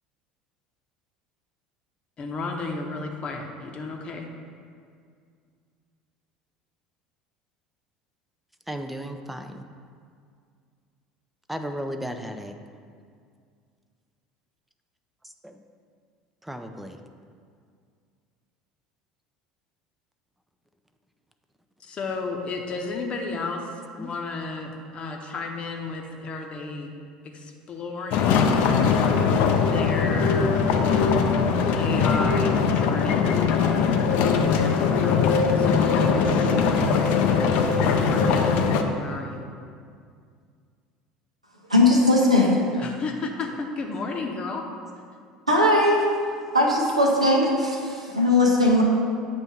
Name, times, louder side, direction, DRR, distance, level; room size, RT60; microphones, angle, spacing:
voice 1, 2.2-4.3 21.8-26.9 27.2-28.6 29.6-30.6 31.8-33.3 34.2-38.5 38.9-39.4 42.8-44.6, left 3 dB, 35° left, 2 dB, 0.8 m, -33 dB
voice 2, 8.7-9.6 11.5-12.6 15.4-15.6 16.4-17.0 24.0-24.1, equal, 5° right, 6 dB, 0.4 m, -34 dB
sound 1, 28.1-38.8, left 5 dB, 55° left, 0.5 m, -21 dB
voice 3, 41.7-42.8 45.5-46.2 46.5-48.8, left 1 dB, 90° right, -1 dB, 0.7 m, -19 dB
7.8 x 2.6 x 5.8 m, 2.2 s
figure-of-eight pair, 65°, 3 cm